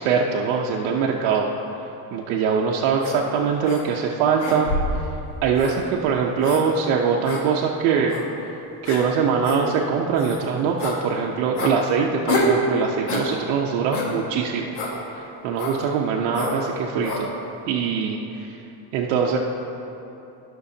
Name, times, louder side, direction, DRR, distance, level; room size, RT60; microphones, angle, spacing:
voice 1, 0.0-1.5 2.1-4.7 5.4-8.2 8.8-14.7 15.2-17.3 17.7-18.5 18.9-19.4, right 6 dB, 80° right, -1 dB, 0.8 m, -22 dB
sound 1, 3.0-3.2 3.6-3.8 4.4-5.0 5.6-5.7 6.4-6.6 7.2-7.4 8.1-8.2 8.8-9.0 9.4-9.6 10.1-10.4 10.8-11.0 11.6-11.7 12.3-12.6 13.1-13.3 13.9-14.1 14.7-14.9 15.6-15.8 16.3-16.6 17.0-17.2, left 2 dB, 75° left, 1.7 m, -26 dB
18.5 x 6.2 x 2.7 m, 3.0 s
cardioid pair, 180°, 47 cm